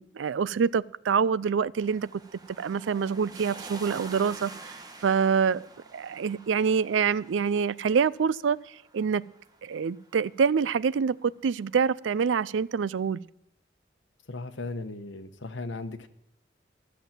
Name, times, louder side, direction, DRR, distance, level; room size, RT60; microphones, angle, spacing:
voice 1, 0.0-2.2 2.6-4.5 5.0-5.7 5.9-8.6 8.9-9.2 9.6-13.2, right 6 dB, 90° right, 21 dB, 0.4 m, -26 dB
doppler coche y coche aparcando lluvia, 1.8-10.8 12.1-12.2, right 3 dB, 20° right, 1.1 m, -47 dB
voice 2, 14.3-16.1, left 3 dB, 85° left, 10 dB, 1.0 m, -36 dB
13.5 x 7.2 x 7.3 m, 0.81 s
head